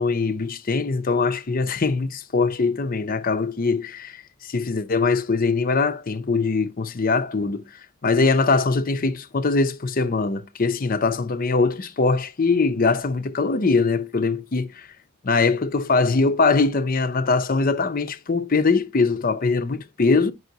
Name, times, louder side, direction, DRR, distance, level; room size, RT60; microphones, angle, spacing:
voice 1, 0.0-4.2 4.5-7.6 8.0-14.7 15.2-20.3, left 4 dB, 45° left, 0.7 m, -22 dB
9.2 x 5.5 x 2.8 m
head